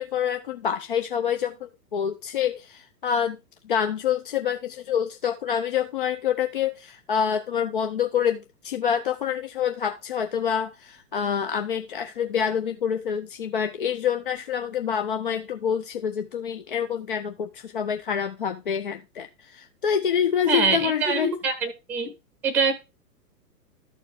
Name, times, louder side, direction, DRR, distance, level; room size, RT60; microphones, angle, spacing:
voice 1, 0.0-3.4 3.6-21.3, left 8 dB, 35° left, 0.4 m, -27 dB
voice 2, 20.5-22.1 22.4-22.7, right 4 dB, 5° right, 0.8 m, -24 dB
13.0 x 4.5 x 3.4 m
figure-of-eight pair, 110°, 48 cm